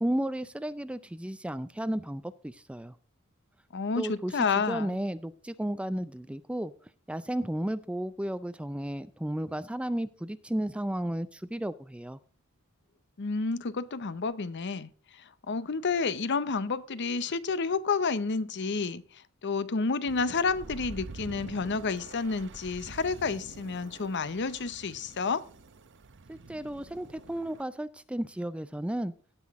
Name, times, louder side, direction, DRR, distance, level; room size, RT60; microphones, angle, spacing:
voice 1, 0.0-2.9 4.0-6.7 7.1-12.2 26.3-29.1, right 1 dB, 5° right, 0.4 m, -33 dB
voice 2, 3.7-5.0 13.2-25.4, left 4 dB, 55° left, 0.7 m, -30 dB
sound 1, 20.1-27.6, right 3 dB, 60° right, 0.8 m, -47 dB
17.0 x 6.0 x 3.6 m
head